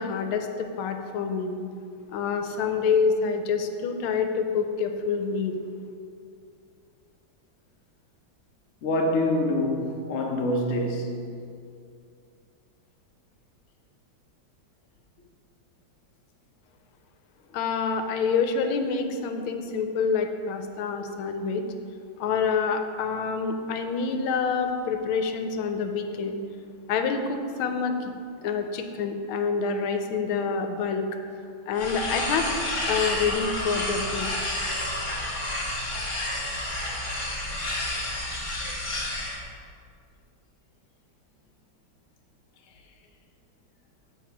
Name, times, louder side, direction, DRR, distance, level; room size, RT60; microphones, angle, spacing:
voice 1, 0.0-1.6 2.1-5.6 17.5-21.6 22.2-26.4 26.9-28.1 28.4-31.0 31.7-32.5 32.9-34.3, left 5 dB, 85° left, 1.5 m, -27 dB
voice 2, 8.8-11.2, left 1 dB, 60° left, 0.7 m, -25 dB
sound 1, 31.7-39.4, left 1 dB, 25° left, 0.8 m, -30 dB
7.4 x 4.4 x 5.8 m
omnidirectional pair, 2.3 m